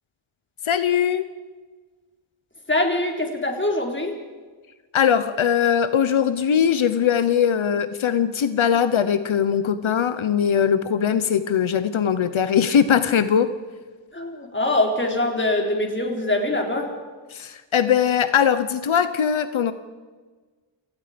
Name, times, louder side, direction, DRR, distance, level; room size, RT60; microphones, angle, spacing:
voice 1, 0.6-1.2 4.9-13.5 17.3-19.7, left 8 dB, 85° left, 11 dB, 1.0 m, -20 dB
voice 2, 2.7-4.2 14.1-16.9, left 2 dB, 25° left, 1 dB, 4.3 m, -23 dB
29.0 x 18.5 x 5.2 m, 1.4 s
wide cardioid pair, 100°, 47 cm